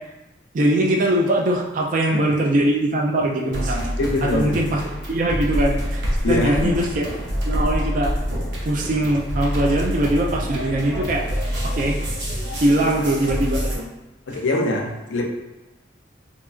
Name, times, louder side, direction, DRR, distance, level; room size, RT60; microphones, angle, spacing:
voice 1, 0.5-3.9 4.2-7.1 7.4-8.1 8.6-11.3 11.6-12.0 12.6-13.8, right 1 dB, 40° right, 1 dB, 0.3 m, -21 dB
sound 1, 3.5-13.8, equal, 70° right, 0.7 m, -26 dB
voice 2, 4.0-4.6 6.2-6.8 14.3-15.2, left 2 dB, 80° left, 1 dB, 0.4 m, -23 dB
2.8 x 2.3 x 2.4 m, 1.0 s
head